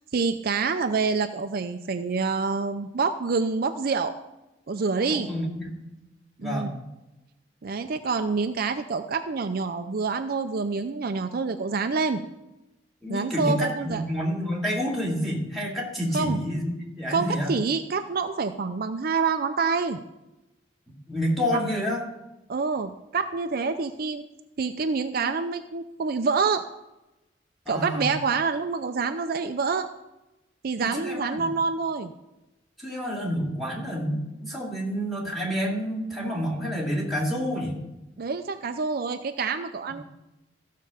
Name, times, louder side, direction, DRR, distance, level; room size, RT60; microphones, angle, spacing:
voice 1, 0.1-4.2 4.7-5.3 6.4-6.7 7.6-12.2 13.1-14.0 16.1-16.4 17.1-20.0 22.5-24.2 24.6-26.6 27.7-29.9 30.6-32.1 38.2-40.0, right 4 dB, 55° right, 8 dB, 0.5 m, -27 dB
voice 2, 5.1-5.7 6.4-6.7 13.0-16.7 16.9-17.5 21.1-22.0 27.7-28.1 31.0-31.2 32.8-37.8, equal, ahead, -2 dB, 2.4 m, -28 dB
14.5 x 6.6 x 5.0 m, 0.99 s
head